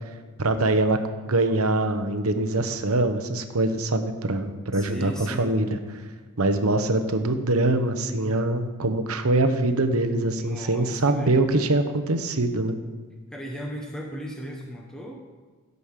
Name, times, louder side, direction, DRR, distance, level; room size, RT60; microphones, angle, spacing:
voice 1, 0.4-1.0 1.3-5.8 6.4-12.8, right 2 dB, 80° right, 8 dB, 1.1 m, -23 dB
voice 2, 4.7-5.5 10.4-11.4 13.3-15.1, equal, 5° left, -1 dB, 1.1 m, -36 dB
16.0 x 5.4 x 6.6 m, 1.5 s
head